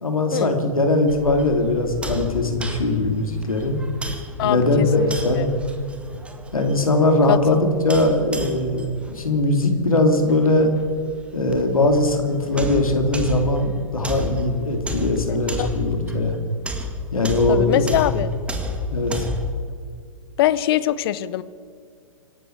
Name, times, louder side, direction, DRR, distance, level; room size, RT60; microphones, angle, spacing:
voice 1, 0.0-3.8 4.4-5.5 6.5-10.7 11.3-16.3 17.1-17.9 18.9-19.3, left 2 dB, 80° left, 4 dB, 3.0 m, -20 dB
sound 1, 1.1-19.6, left 1 dB, 5° right, 1.6 m, -33 dB
voice 2, 4.4-5.5 7.3-7.6 15.3-15.7 17.5-18.3 20.4-21.4, left 13 dB, 45° left, 16 dB, 0.8 m, -23 dB
26.0 x 12.0 x 4.7 m, 2.3 s
figure-of-eight pair, 115°, 18 cm